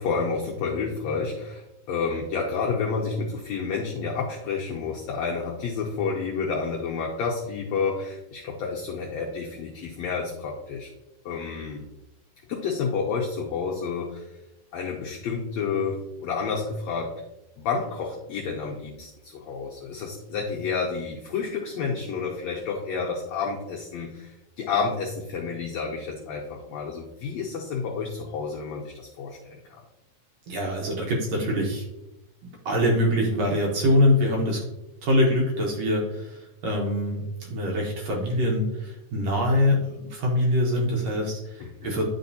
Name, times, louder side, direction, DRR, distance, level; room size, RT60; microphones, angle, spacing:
voice 1, 0.0-10.9 11.2-11.8 12.5-14.4 14.7-17.1 17.6-29.8 41.6-42.0, left 5 dB, 85° left, -1 dB, 1.5 m, -30 dB
voice 2, 30.5-31.8 32.7-34.6 35.0-42.0, left 1 dB, 65° right, -2 dB, 1.8 m, -24 dB
10.5 x 4.2 x 2.7 m, 0.95 s
omnidirectional pair, 4.0 m